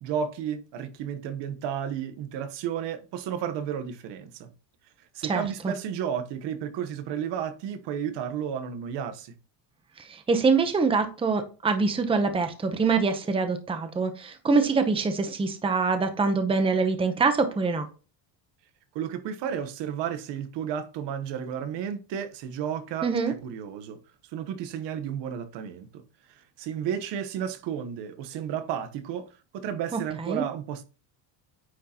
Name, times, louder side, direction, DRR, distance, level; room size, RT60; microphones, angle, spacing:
voice 1, 0.0-4.5 5.1-9.3 18.9-24.0 24.3-26.0 26.6-29.2 29.5-30.8, right 8 dB, 60° right, 1.2 m, -32 dB
voice 2, 5.2-5.7 10.0-17.9 23.0-23.3 29.9-30.4, right 4 dB, 10° right, 0.8 m, -25 dB
9.4 x 6.4 x 2.9 m
cardioid pair, 150°, 48 cm